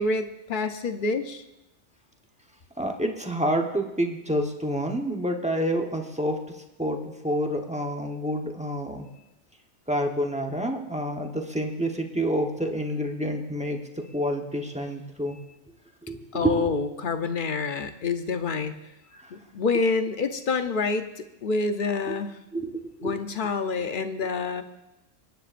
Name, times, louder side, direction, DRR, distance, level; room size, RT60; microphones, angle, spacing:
voice 1, 0.0-1.4 16.3-18.7 19.3-21.1 21.4-22.4 23.0-24.6, left 4 dB, 50° left, 8 dB, 0.8 m, -27 dB
voice 2, 2.8-6.4 6.8-9.1 9.9-15.4 16.1-16.7 19.1-19.3 22.1-22.2 22.5-23.2, equal, 5° right, 2 dB, 0.9 m, -28 dB
24.5 x 10.5 x 2.5 m, 0.91 s
omnidirectional pair, 1.3 m